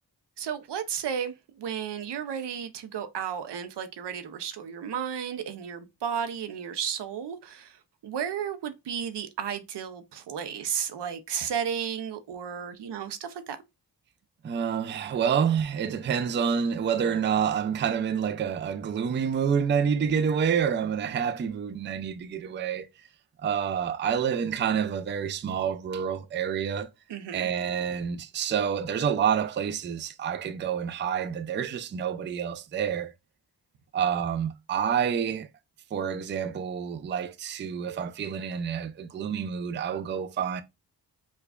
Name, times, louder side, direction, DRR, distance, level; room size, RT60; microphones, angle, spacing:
voice 1, 0.4-13.6 27.1-27.5, right 8 dB, 85° right, 0.6 m, -33 dB
voice 2, 14.4-22.9 23.4-26.9 27.3-33.1 33.9-35.5 35.9-40.6, right 7 dB, 30° right, 0.3 m, -28 dB
4.8 x 2.3 x 2.3 m
cardioid pair, 70°, 41 cm